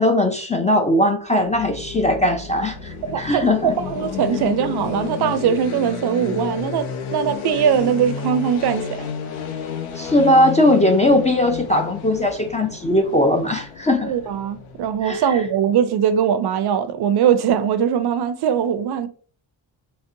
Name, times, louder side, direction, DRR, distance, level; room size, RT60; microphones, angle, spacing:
voice 1, 0.0-3.7 10.0-14.1 15.0-15.2, left 1 dB, 15° left, 0.3 m, -19 dB
sound 1, 1.4-15.3, left 7 dB, 90° left, 0.6 m, -31 dB
voice 2, 3.0-9.1 14.0-19.1, right 8 dB, 55° right, 0.5 m, -21 dB
3.9 x 2.0 x 2.6 m
cardioid pair, 75°, 47 cm